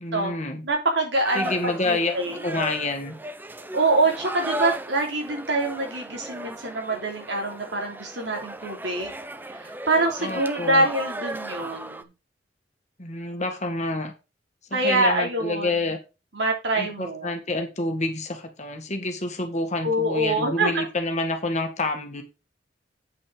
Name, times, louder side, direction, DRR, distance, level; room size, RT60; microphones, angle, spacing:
voice 1, 0.0-0.6 1.4-2.2 2.4-3.1 10.2-10.9 13.0-14.1 14.7-16.0 16.7-22.2, left 2 dB, 40° left, 5 dB, 1.8 m, -28 dB
voice 2, 0.6-1.5 1.9-2.6 3.7-9.1 9.5-12.1 14.7-15.7 16.3-17.3 19.8-20.7, right 2 dB, 75° right, 1 dB, 3.2 m, -25 dB
sound 1, 1.2-12.0, right 1 dB, 10° right, 0.6 m, -36 dB
8.6 x 5.5 x 5.0 m, 0.29 s
head